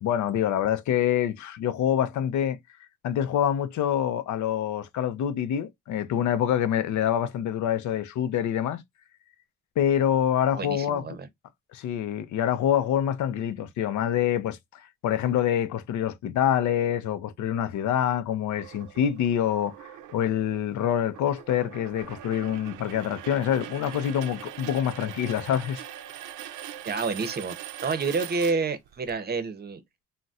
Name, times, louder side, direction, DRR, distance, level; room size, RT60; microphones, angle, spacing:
voice 1, 0.0-2.6 3.0-8.8 9.8-11.2 11.7-25.8, left 10 dB, 70° left, 0.5 m, -26 dB
voice 2, 10.5-11.2 26.9-27.5 27.8-29.8, right 4 dB, 35° right, 0.7 m, -29 dB
sound 1, 18.5-29.1, right 11 dB, 85° right, 0.5 m, -42 dB
3.9 x 2.1 x 2.4 m
cardioid pair, 90°, 30 cm